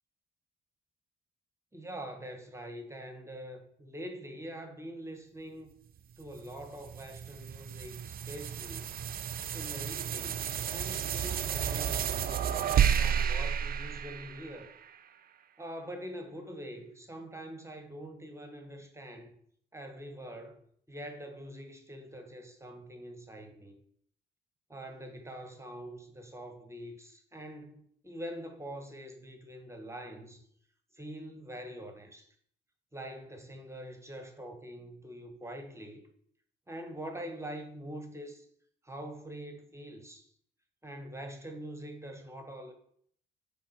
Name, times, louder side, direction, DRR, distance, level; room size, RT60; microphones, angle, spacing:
voice 1, 1.7-5.7 6.2-9.0 9.5-12.4 12.9-14.7 15.6-19.3 19.7-20.6 20.9-23.8 24.7-30.4 31.0-32.3 32.9-36.1 36.7-38.4 38.8-40.3 40.8-42.7, equal, 15° right, 1.0 m, -44 dB
sound 1, 6.3-14.9, right 8 dB, 50° right, 0.5 m, -32 dB
8.7 x 3.6 x 4.6 m
cardioid pair, 90°, 20 cm